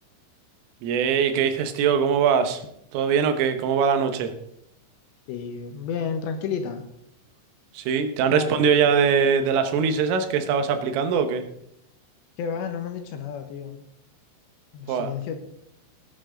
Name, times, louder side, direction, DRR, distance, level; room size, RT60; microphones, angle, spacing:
voice 1, 0.8-2.6 2.9-4.3 7.7-11.4 14.9-15.1, right 7 dB, 85° right, 8 dB, 3.8 m, -22 dB
voice 2, 5.3-6.8 8.3-8.7 12.4-13.7 14.7-15.4, left 6 dB, 75° left, 6 dB, 3.0 m, -31 dB
18.0 x 9.1 x 3.9 m, 0.73 s
omnidirectional pair, 5.6 m